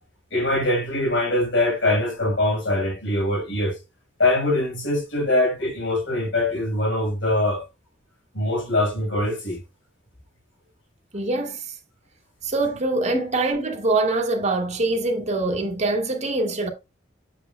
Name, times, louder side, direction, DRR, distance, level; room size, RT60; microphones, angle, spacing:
voice 1, 0.3-3.8 4.2-7.7 8.3-9.6 13.1-13.3, left 1 dB, 90° left, 5.6 m, -23 dB
voice 2, 11.1-11.7 12.4-16.7, right 2 dB, 40° right, 2.1 m, -24 dB
8.4 x 7.7 x 2.3 m
head